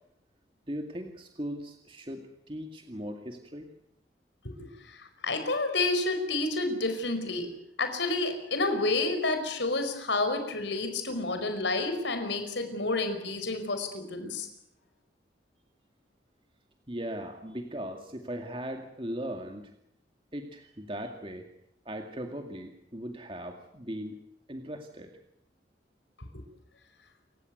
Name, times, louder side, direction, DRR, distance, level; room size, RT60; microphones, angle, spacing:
voice 1, 0.7-3.7 16.9-19.7 20.3-21.5 21.9-24.2 24.5-25.1, equal, 30° right, 4 dB, 2.2 m, -38 dB
voice 2, 4.9-7.5 7.8-14.5 26.2-26.3, left 2 dB, 85° left, 7 dB, 5.0 m, -29 dB
28.0 x 16.0 x 9.5 m, 0.77 s
head